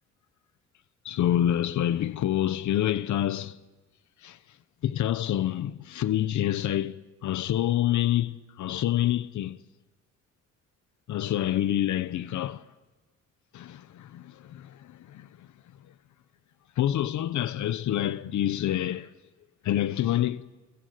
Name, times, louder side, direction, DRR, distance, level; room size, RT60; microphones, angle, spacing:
voice 1, 1.0-3.6 4.2-4.4 4.8-9.6 11.1-12.6 13.5-15.5 16.8-19.1 19.6-20.4, left 12 dB, 70° left, 1.0 m, -27 dB
30.0 x 20.5 x 7.8 m
cardioid pair, 90°, 30 cm